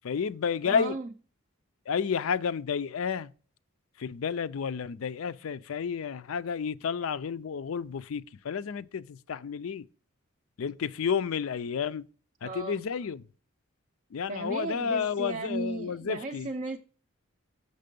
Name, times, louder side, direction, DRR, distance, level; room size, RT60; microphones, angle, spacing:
voice 1, 0.0-1.0 1.9-3.3 4.0-9.8 10.6-12.0 12.4-13.3 14.1-16.5, left 6 dB, 75° left, 0.4 m, -31 dB
voice 2, 0.6-1.1 12.4-12.8 14.3-16.8, right 3 dB, 35° right, 0.4 m, -35 dB
6.7 x 6.6 x 5.2 m
head